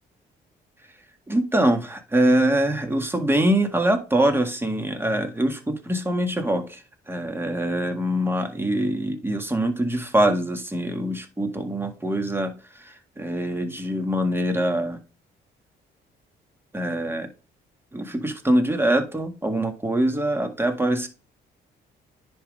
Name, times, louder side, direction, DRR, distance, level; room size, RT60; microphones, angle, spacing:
voice 1, 1.3-6.8 7.1-12.5 12.8-15.0 16.7-17.3 17.9-21.1, right 1 dB, 10° right, 5 dB, 1.7 m, -24 dB
10.0 x 3.7 x 5.2 m, 0.35 s
cardioid pair, 90°, 20 cm